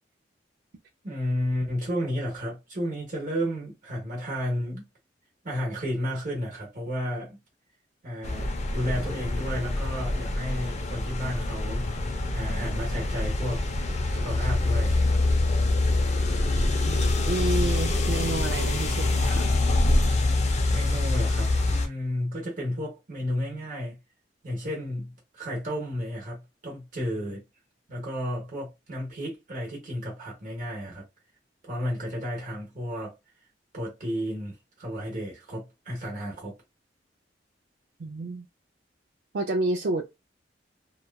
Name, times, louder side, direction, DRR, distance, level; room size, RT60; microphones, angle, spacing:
voice 1, 1.0-4.8 5.4-7.4 8.0-11.8 12.3-13.6 14.1-15.2 20.7-24.0 24.4-27.4 27.9-31.0 31.6-33.1 33.7-36.5, equal, 45° right, 0.9 m, -32 dB
sound 1, 8.2-21.9, left 2 dB, 40° left, 0.5 m, -25 dB
voice 2, 16.9-19.5 38.0-38.5 39.3-40.0, right 2 dB, 65° right, 0.4 m, -29 dB
2.9 x 2.3 x 2.2 m
head